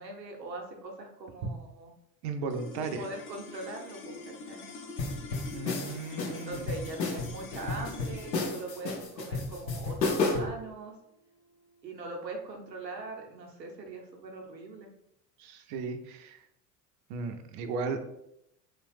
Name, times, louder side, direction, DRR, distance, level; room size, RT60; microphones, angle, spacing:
voice 1, 0.0-1.9 2.8-4.7 6.3-10.9 11.8-14.9, right 2 dB, 85° right, 1 dB, 0.7 m, -41 dB
voice 2, 2.2-3.1 5.5-6.7 15.4-16.4 17.1-18.0, right 4 dB, 40° right, 7 dB, 0.4 m, -35 dB
sound 1, 2.5-12.9, left 3 dB, 25° left, 0.5 m, -47 dB
sound 2, 5.0-10.6, left 3 dB, 90° left, 0.6 m, -32 dB
2.9 x 2.1 x 3.1 m, 0.79 s
figure-of-eight pair, 70°, 49 cm